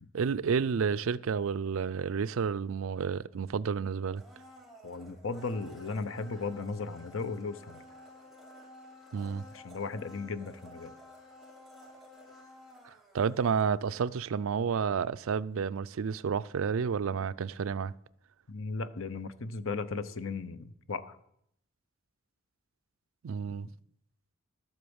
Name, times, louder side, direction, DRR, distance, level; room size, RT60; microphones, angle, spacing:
voice 1, 0.1-4.2 9.1-9.4 12.8-17.9 23.2-23.7, right 6 dB, 70° right, 0.4 m, -30 dB
Domestic sounds home sounds, 4.1-14.1 14.4-14.5, left 1 dB, ahead, 2.4 m, -53 dB
voice 2, 4.8-7.8 9.5-10.9 18.5-21.2, left 4 dB, 70° left, 0.8 m, -36 dB
12.5 x 8.0 x 7.1 m
head